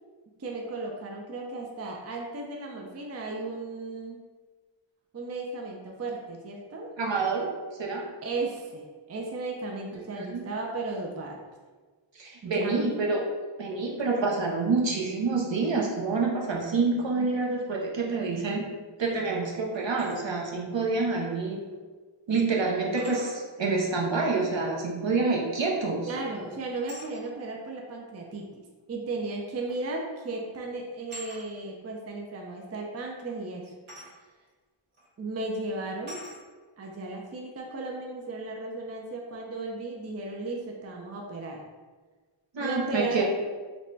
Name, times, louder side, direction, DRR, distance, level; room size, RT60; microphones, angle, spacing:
voice 1, 0.4-4.2 5.1-6.9 8.2-11.4 12.4-12.9 18.2-18.6 26.1-28.6 28.9-33.7 35.2-36.2 36.8-41.6 42.6-43.2, right 2 dB, 35° right, 0 dB, 0.4 m, -35 dB
voice 2, 7.0-7.5 7.8-8.1 10.1-10.4 12.2-13.2 13.6-18.6 19.0-21.6 22.3-26.1 42.5-43.2, right 3 dB, 65° right, -2 dB, 0.7 m, -27 dB
sound 1, 19.7-20.2 21.7-21.8 23.0-23.4 25.6-26.0 26.9-27.1 28.3-28.4 29.7-29.9 30.2-30.4 31.1-31.4 33.9-34.1 34.9-35.1 36.1-36.4, equal, 90° right, 1.5 m, -44 dB
3.3 x 2.1 x 3.8 m, 1.4 s
wide cardioid pair, 70°, 50 cm